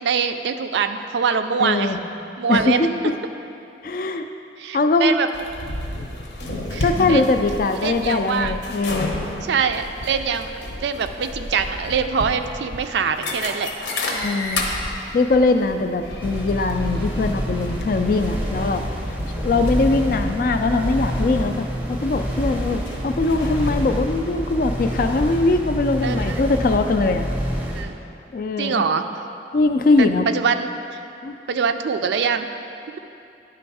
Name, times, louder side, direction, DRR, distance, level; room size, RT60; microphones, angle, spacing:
voice 1, 0.0-1.9 2.4-2.9 4.6-5.3 6.7-7.4 7.8-8.5 9.4-10.5 10.8-13.7 14.1-14.4 26.0-26.7 27.7-27.9 28.6-29.1 30.0-31.0 31.5-32.5, right 6 dB, 70° right, 8 dB, 0.3 m, -24 dB
voice 2, 1.6-2.0 2.5-2.9 3.8-4.3 4.7-5.2 6.8-9.1 14.2-14.7 15.1-18.8 19.4-27.3 28.3-28.9 29.5-30.3 31.2-31.4, left 3 dB, 50° left, 7 dB, 0.3 m, -21 dB
sound 1, 5.3-23.7, left 2 dB, 80° left, 0.8 m, -32 dB
sound 2, 16.2-27.8, equal, 10° right, 0.6 m, -27 dB
10.5 x 3.5 x 4.7 m, 2.7 s
head